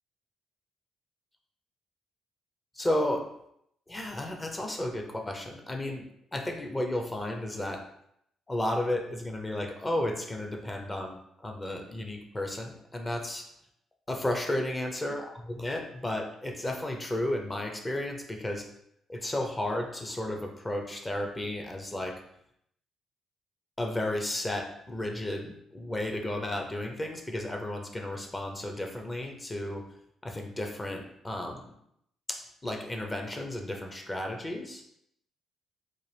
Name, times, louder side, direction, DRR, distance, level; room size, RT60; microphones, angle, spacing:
voice 1, 2.8-3.3 3.9-6.0 6.3-7.9 8.5-13.5 14.1-18.7 19.1-22.2 23.8-29.8 30.2-31.6 32.3-34.8, left 1 dB, 20° left, 4 dB, 0.6 m, -33 dB
3.9 x 2.4 x 3.3 m, 0.74 s
cardioid pair, 90°, 0 cm